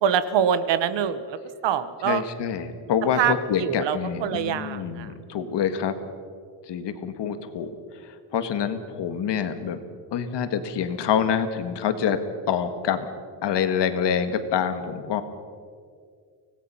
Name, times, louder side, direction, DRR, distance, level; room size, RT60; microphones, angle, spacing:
voice 1, 0.0-2.2 3.1-5.1, right 8 dB, 80° right, 13 dB, 1.3 m, -25 dB
voice 2, 2.0-6.0 6.7-7.7 8.0-9.8 10.1-12.2 12.5-13.1 13.4-15.2, left 8 dB, 70° left, 9 dB, 1.8 m, -26 dB
25.5 x 18.5 x 5.7 m, 2.1 s
cardioid pair, 155°, 43 cm